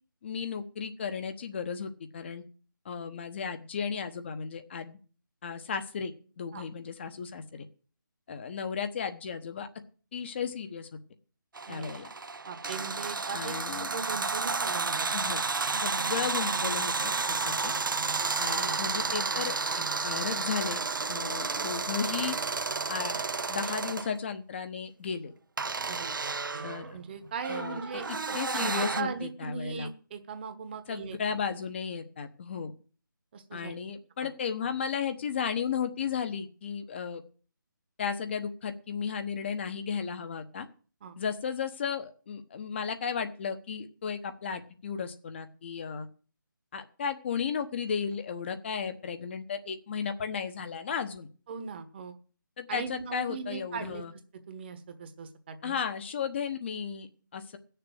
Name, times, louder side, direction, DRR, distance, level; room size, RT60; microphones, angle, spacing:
voice 1, 0.2-2.4 2.8-5.0 5.4-7.7 8.3-9.7 10.1-10.9 11.7-12.1 13.3-13.9 15.1-15.4 15.8-17.1 17.4-17.7 18.4-19.6 20.0-20.8 21.1-22.4 22.9-23.1 23.5-25.3 26.6-27.0 27.5-29.9 30.9-32.7 33.5-37.2 38.0-40.7 41.2-46.1 46.7-51.3 52.6-54.1 55.6-57.6, left 6 dB, 35° left, 8 dB, 1.1 m, -34 dB
Heavy door squeak, 11.6-24.1 25.6-29.0, right 4 dB, 70° right, 0.9 m, -31 dB
voice 2, 12.5-15.4 18.2-18.3 25.9-31.4 33.3-33.7 41.0-41.2 51.5-52.2 52.7-54.0 54.5-55.7, right 6 dB, 30° right, 9 dB, 1.3 m, -39 dB
16.5 x 6.8 x 7.8 m, 0.40 s
figure-of-eight pair, 160°, 11 cm